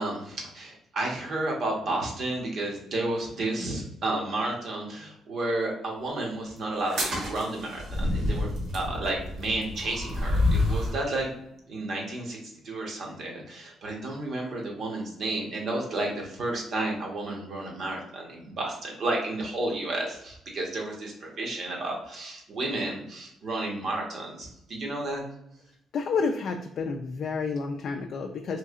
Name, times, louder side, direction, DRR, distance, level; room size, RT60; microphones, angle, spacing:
voice 1, 0.0-8.5 8.7-11.4 11.7-12.4 12.6-25.2, right 2 dB, 60° right, -1 dB, 1.0 m, -32 dB
sound 1, 6.8-11.0, left 2 dB, 80° right, 1.1 m, -28 dB
voice 2, 25.9-28.6, left 4 dB, 60° left, 3 dB, 0.3 m, -30 dB
3.1 x 2.7 x 2.4 m, 0.77 s
cardioid pair, 90°, 0 cm